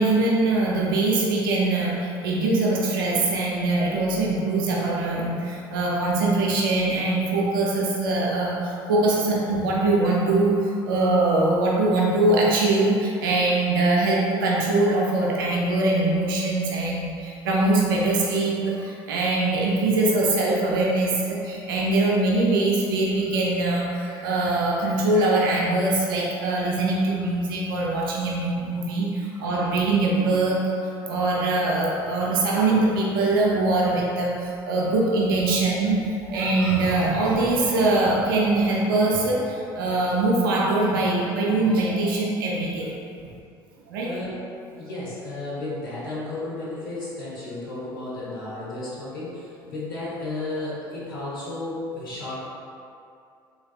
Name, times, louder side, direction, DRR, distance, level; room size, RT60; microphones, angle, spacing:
voice 1, 0.0-30.7 31.1-42.9 43.9-44.1, right 2 dB, 80° right, -3 dB, 0.5 m, -22 dB
voice 2, 44.0-44.4 44.8-52.5, left 2 dB, 90° left, -8 dB, 1.0 m, -33 dB
4.0 x 3.5 x 2.3 m, 2.4 s
hypercardioid pair, 65°, 11 cm